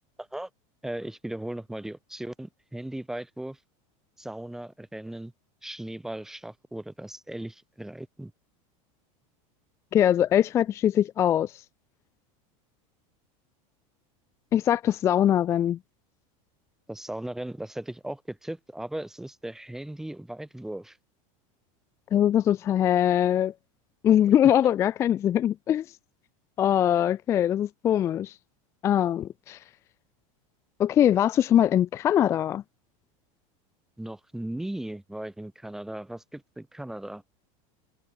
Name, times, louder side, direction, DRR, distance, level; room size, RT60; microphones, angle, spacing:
voice 1, 0.2-0.5 0.8-3.6 4.2-5.3 5.6-8.3 16.9-21.0 34.0-37.2, right 1 dB, ahead, 5.5 m, -37 dB
voice 2, 9.9-11.6 14.5-15.8 22.1-23.5 24.0-25.8 26.6-28.3 28.8-29.6 30.8-32.6, left 10 dB, 15° left, 0.4 m, -22 dB
supercardioid pair, 180°, 18 cm